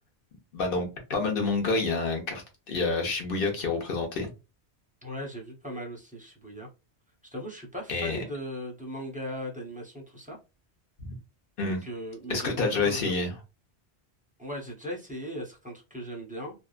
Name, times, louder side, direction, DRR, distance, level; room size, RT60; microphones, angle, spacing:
voice 1, 0.5-2.4 2.7-4.3 7.9-8.2 11.0-11.1 11.6-11.8 12.3-13.3, left 3 dB, 55° left, 1.0 m, -28 dB
voice 2, 5.0-6.7 7.2-10.4 11.6-13.1 14.4-16.5, equal, 10° right, 0.7 m, -38 dB
2.7 x 2.3 x 2.4 m
omnidirectional pair, 1.1 m